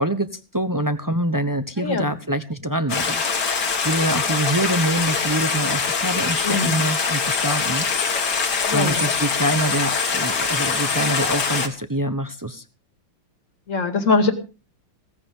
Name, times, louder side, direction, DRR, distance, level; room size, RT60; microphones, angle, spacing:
voice 1, 0.0-7.9 8.7-12.6, right 1 dB, 30° right, 10 dB, 0.3 m, -25 dB
voice 2, 1.8-2.1 6.4-6.8 8.7-9.0 13.7-14.3, left 4 dB, 40° left, 7 dB, 2.5 m, -21 dB
Stream, 2.9-11.7, left 5 dB, 60° left, 2.4 m, -23 dB
18.0 x 14.5 x 3.7 m, 0.34 s
omnidirectional pair, 2.1 m